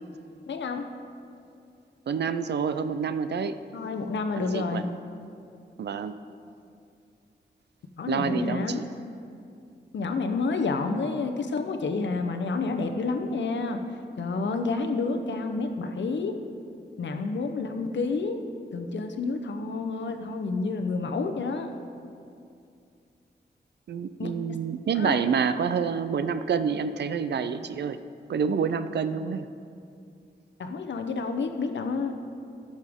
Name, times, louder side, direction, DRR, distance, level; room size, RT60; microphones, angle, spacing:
voice 1, 0.5-0.9 3.7-4.9 8.0-8.8 9.9-13.8 14.2-16.4 17.0-18.4 18.7-21.7 24.2-24.3 24.9-25.3 30.6-32.1, left 4 dB, 85° left, 6 dB, 0.8 m, -29 dB
voice 2, 2.1-3.6 4.4-4.8 5.8-6.1 8.1-8.8 23.9-28.0 28.3-29.5, right 6 dB, 70° right, 11 dB, 0.4 m, -28 dB
16.0 x 6.5 x 3.6 m, 2.5 s
wide cardioid pair, 175°, 18 cm